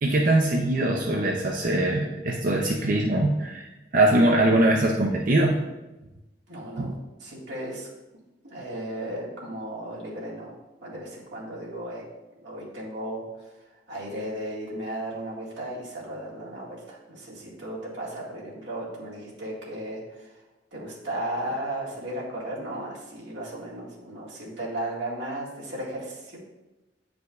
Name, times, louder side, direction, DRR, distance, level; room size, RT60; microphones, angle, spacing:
voice 1, 0.0-3.7 3.9-5.6 6.8-6.9, right 1 dB, 50° right, 0 dB, 0.6 m, -22 dB
voice 2, 6.5-6.9 7.2-7.9 8.4-10.6 10.8-12.0 12.4-13.2 13.9-20.3 20.7-26.4, right 1 dB, 85° right, -5 dB, 2.0 m, -35 dB
9.2 x 4.9 x 2.4 m, 1.0 s
head